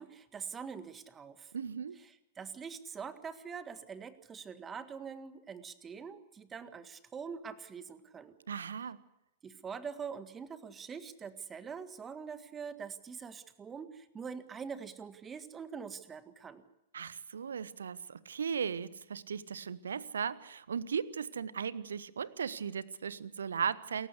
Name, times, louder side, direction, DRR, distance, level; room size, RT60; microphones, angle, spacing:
voice 1, 0.0-1.5 2.4-8.3 9.4-16.6, right 6 dB, 20° right, 12 dB, 1.7 m, -44 dB
voice 2, 1.5-2.0 8.5-9.0 16.9-24.1, right 7 dB, 65° right, 19 dB, 1.0 m, -37 dB
28.0 x 15.0 x 8.3 m, 0.89 s
figure-of-eight pair, 100°, 0 cm